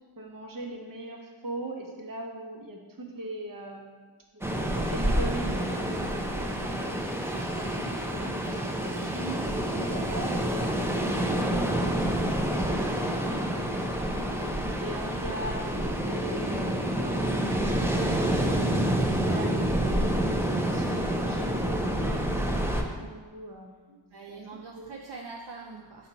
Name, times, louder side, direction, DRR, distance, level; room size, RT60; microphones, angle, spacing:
voice 1, 0.2-4.1 4.3-4.5 4.7-6.9 7.3-13.4 14.2-18.6 19.1-22.2 23.0-24.0 24.3-24.4 24.8-24.9, right 1 dB, 45° right, 1 dB, 1.0 m, -41 dB
Ocean, 4.4-22.8, right 1 dB, 5° right, 0.5 m, -28 dB
voice 2, 24.1-26.1, right 4 dB, 65° right, 0 dB, 0.6 m, -43 dB
5.6 x 4.3 x 4.0 m, 1.4 s
wide cardioid pair, 75°, 45 cm